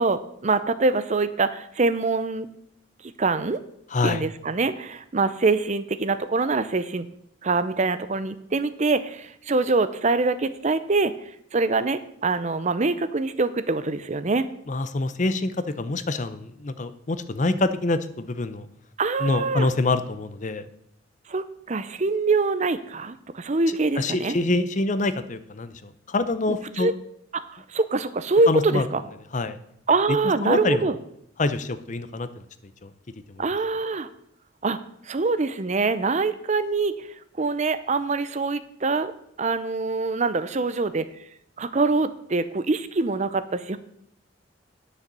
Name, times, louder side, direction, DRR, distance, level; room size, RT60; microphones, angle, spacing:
voice 1, 0.0-2.5 3.2-3.6 4.0-7.1 7.4-11.1 11.5-14.5 19.0-19.7 21.3-24.3 26.5-26.9 27.3-29.0 29.9-31.0 33.4-34.1 34.6-34.8 35.1-37.1 37.4-39.1 39.4-41.1 41.6-43.8, right 3 dB, 40° right, 13 dB, 0.6 m, -24 dB
voice 2, 3.9-4.3 14.7-18.7 19.2-20.7 23.7-26.9 28.5-28.9 29.3-29.6 30.1-30.2 30.4-30.9 31.4-32.4 32.8-32.9 33.3-33.4, left 2 dB, 40° left, 12 dB, 0.7 m, -26 dB
10.0 x 6.7 x 6.8 m, 0.74 s
head